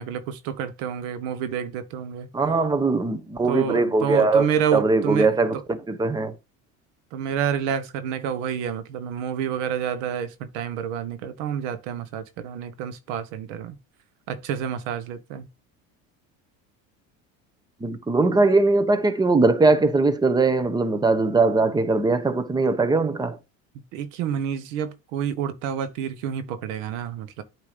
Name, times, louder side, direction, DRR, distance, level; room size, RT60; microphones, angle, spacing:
voice 1, 0.0-2.3 3.5-5.6 7.1-13.8 14.3-15.5 23.9-27.4, right 8 dB, 80° right, 1.1 m, -29 dB
voice 2, 2.3-6.3 17.8-23.4, right 3 dB, 10° right, 0.9 m, -21 dB
8.5 x 3.0 x 5.1 m
supercardioid pair, 110°, 37 cm